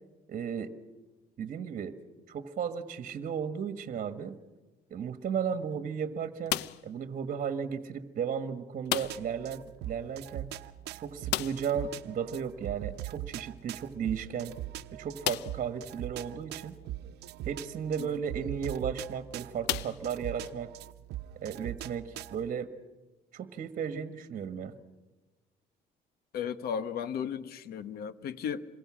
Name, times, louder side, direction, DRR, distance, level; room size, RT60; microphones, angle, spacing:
voice 1, 0.3-0.7 1.4-2.0 2.3-4.4 4.9-10.5 10.9-14.5 14.9-16.7 17.4-20.7 21.4-22.7 23.3-24.7, right 7 dB, 50° right, 1.6 m, -35 dB
sound 1, 6.5-7.0 8.9-9.4 9.7-9.8 10.1-10.2 11.3-11.8 13.6-13.7 14.3-14.4 15.2-15.7 16.4-16.5 18.5-18.8 19.6-20.5, left 15 dB, 85° left, 0.7 m, -34 dB
sound 2, 9.0-22.5, right 14 dB, 75° right, 0.9 m, -42 dB
voice 2, 26.3-28.6, left 7 dB, 65° left, 1.3 m, -35 dB
27.5 x 22.5 x 6.4 m
cardioid pair, 110°, 17 cm